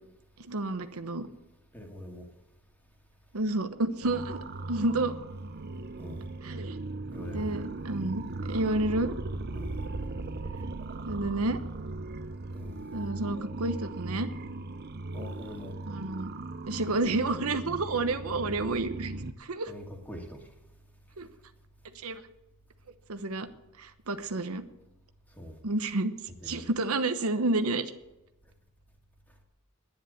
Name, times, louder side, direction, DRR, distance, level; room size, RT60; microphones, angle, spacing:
voice 1, 0.4-1.3 3.3-4.4 4.7-5.1 6.4-6.8 7.3-9.1 11.1-11.6 12.9-14.3 15.9-16.3 16.7-19.1 19.4-19.7 21.2-21.3 21.9-22.2 23.1-23.5 23.8-24.6 25.6-26.1 26.4-27.9, right 2 dB, 80° right, 1.0 m, -30 dB
voice 2, 1.7-2.3 6.0-6.2 7.1-7.5 9.5-9.8 12.5-12.8 15.1-15.7 19.7-20.4 25.4-25.6 26.4-26.6, left 1 dB, 10° left, 2.2 m, -42 dB
sound 1, 4.0-19.3, right 2 dB, 45° right, 0.8 m, -38 dB
10.5 x 10.5 x 8.5 m
head